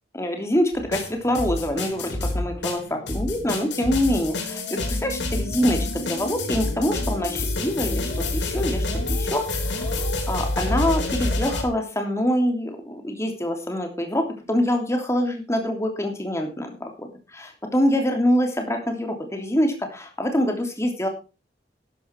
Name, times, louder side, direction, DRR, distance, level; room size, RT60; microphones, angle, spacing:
voice 1, 0.1-21.1, equal, 15° left, 4 dB, 3.0 m, -25 dB
sound 1, 0.7-11.6, left 2 dB, 90° left, 3.6 m, -27 dB
12.5 x 11.0 x 4.6 m, 0.31 s
head